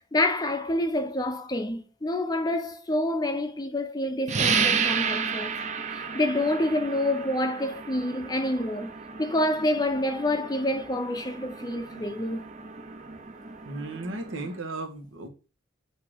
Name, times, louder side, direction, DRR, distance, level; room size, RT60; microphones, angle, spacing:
voice 1, 0.1-5.6 5.9-8.9 9.2-12.5, left 1 dB, 20° left, 0.5 m, -27 dB
sound 1, 4.3-14.6, right 6 dB, 35° right, 0.7 m, -32 dB
voice 2, 13.6-15.3, right 2 dB, 80° right, 1.6 m, -35 dB
8.2 x 2.8 x 5.0 m
head